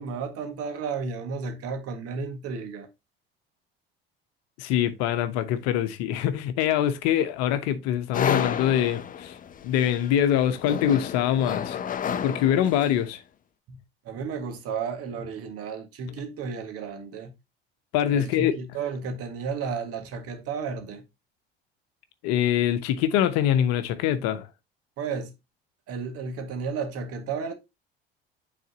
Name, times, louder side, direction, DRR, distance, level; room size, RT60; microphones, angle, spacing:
voice 1, 0.0-2.9 13.7-13.8 14.1-17.3 18.1-21.0 25.0-25.3 25.9-27.5, right 5 dB, 50° right, 1.7 m, -33 dB
voice 2, 4.6-9.3 9.6-11.8 12.2-13.2 17.9-18.5 22.2-24.5, left 10 dB, 60° left, 0.9 m, -24 dB
sound 1, 8.1-13.1, left 8 dB, 30° left, 0.6 m, -31 dB
9.2 x 4.1 x 2.8 m
hypercardioid pair, 65°, 29 cm